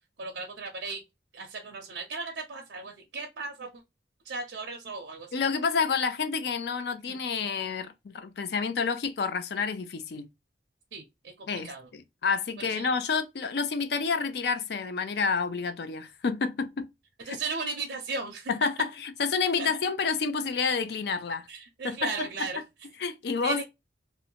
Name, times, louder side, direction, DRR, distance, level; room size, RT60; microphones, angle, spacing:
voice 1, 0.2-1.0 1.3-3.8 4.2-5.3 7.1-7.2 10.9-11.9 12.6-12.9 17.3-18.5 19.6-19.7 21.5-22.6 23.4-23.7, right 4 dB, 75° right, 0.5 m, -36 dB
voice 2, 5.3-10.3 11.5-11.7 12.2-16.9 17.3-17.4 18.5-21.5 21.8-22.3 23.0-23.7, left 5 dB, 60° left, 0.4 m, -29 dB
2.6 x 2.1 x 2.7 m
head